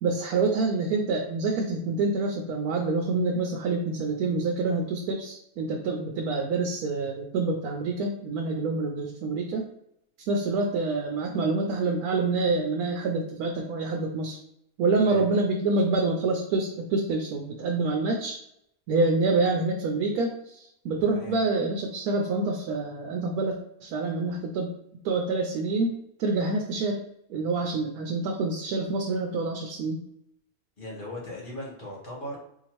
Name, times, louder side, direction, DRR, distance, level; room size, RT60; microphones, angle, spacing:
voice 1, 0.0-9.7 10.3-14.4 14.8-18.4 18.9-24.7 25.0-27.0 27.3-30.0, right 3 dB, 80° right, 2 dB, 1.1 m, -27 dB
voice 2, 21.1-21.4 30.8-32.4, left 1 dB, 40° left, -4 dB, 1.0 m, -38 dB
4.1 x 2.8 x 2.9 m, 0.78 s
omnidirectional pair, 1.6 m